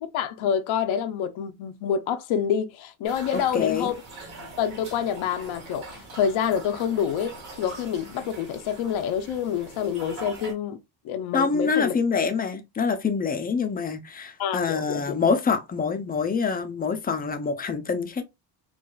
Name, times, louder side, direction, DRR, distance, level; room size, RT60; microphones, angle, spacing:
voice 1, 0.0-3.9 4.6-10.8 11.0-12.0 14.4-15.1, left 8 dB, 90° left, 0.6 m, -27 dB
sound 1, 3.0-10.5, right 2 dB, 75° right, 2.0 m, -42 dB
voice 2, 3.3-3.9 11.3-18.2, left 5 dB, 20° left, 0.3 m, -26 dB
4.6 x 2.3 x 2.2 m
cardioid pair, 150°, 46 cm